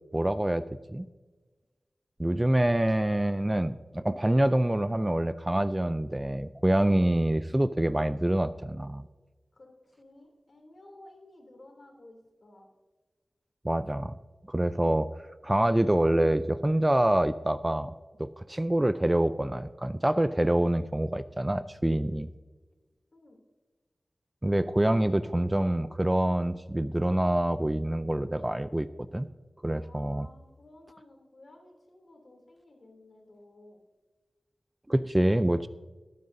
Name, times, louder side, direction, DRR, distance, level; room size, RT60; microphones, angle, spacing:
voice 1, 0.1-0.6 0.9-1.1 2.2-9.1 13.6-14.1 14.5-15.1 15.4-17.9 18.2-22.3 24.4-28.9 29.1-29.3 29.6-30.3 34.9-35.7, right 1 dB, 20° right, 13 dB, 0.4 m, -26 dB
voice 2, 9.5-12.7 23.1-23.4 29.8-33.8, left 1 dB, 60° left, 1 dB, 2.9 m, -54 dB
17.0 x 9.4 x 2.7 m, 1.3 s
wide cardioid pair, 65°, 0 cm